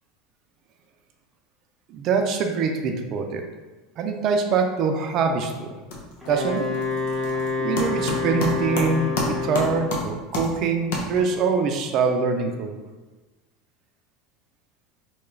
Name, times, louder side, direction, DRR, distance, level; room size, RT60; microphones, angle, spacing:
voice 1, 1.9-3.4 4.0-5.7 6.3-6.7 7.6-12.7, right 5 dB, 50° right, 4 dB, 0.4 m, -24 dB
sound 1, 5.0-5.4 5.7-11.5, left 2 dB, 75° left, 0.7 m, -31 dB
Wind instrument woodwind instrument, 6.2-10.0, left 3 dB, ahead, 0.9 m, -27 dB
2.9 x 2.3 x 3.2 m, 1.2 s
supercardioid pair, 115°, 0 cm